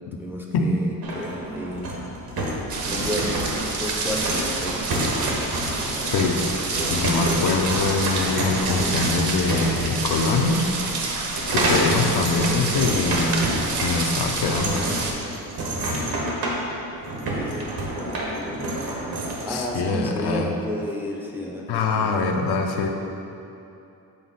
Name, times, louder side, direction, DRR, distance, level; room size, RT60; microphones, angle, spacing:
voice 1, 0.2-1.9 2.8-4.8 11.7-11.8 17.1-18.8 19.4-22.1, equal, 5° right, -2 dB, 0.5 m, -32 dB
sound 1, 1.0-19.5, right 1 dB, 70° right, 1.2 m, -29 dB
sound 2, 2.7-15.1, right 3 dB, 50° right, 0.8 m, -28 dB
voice 2, 6.1-6.4 6.9-10.6 11.5-14.8 19.5-20.5 21.7-22.9, left 4 dB, 85° left, 3 dB, 0.7 m, -23 dB
8.0 x 4.2 x 4.0 m, 2.8 s
wide cardioid pair, 165°, 38 cm